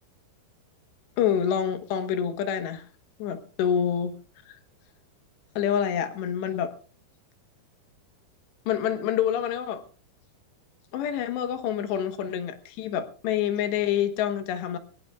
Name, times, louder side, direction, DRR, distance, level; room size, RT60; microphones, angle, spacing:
voice 1, 1.2-2.8 3.2-4.1 4.5-4.6 5.6-6.7 8.7-9.8 10.9-14.8, left 9 dB, 80° left, 9 dB, 3.4 m, -27 dB
21.5 x 18.5 x 2.4 m, 0.39 s
omnidirectional pair, 4.9 m